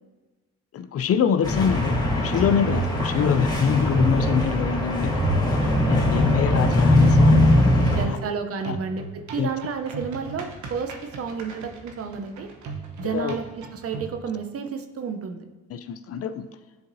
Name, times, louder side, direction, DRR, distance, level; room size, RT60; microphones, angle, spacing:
voice 1, 0.7-5.2 5.9-8.2 8.6-8.8 9.4-9.5 13.0-13.4 15.7-16.5, left 7 dB, 50° left, 11 dB, 0.4 m, -25 dB
sound 1, 1.4-8.1, left 1 dB, 15° left, 1.3 m, -20 dB
sound 2, 5.6-6.7 8.6-14.2, right 4 dB, 70° right, 1.0 m, -39 dB
voice 2, 7.9-12.5 13.0-15.4, right 5 dB, 50° right, 7 dB, 0.6 m, -31 dB
10.5 x 3.9 x 2.7 m, 1.3 s
cardioid pair, 90°, 30 cm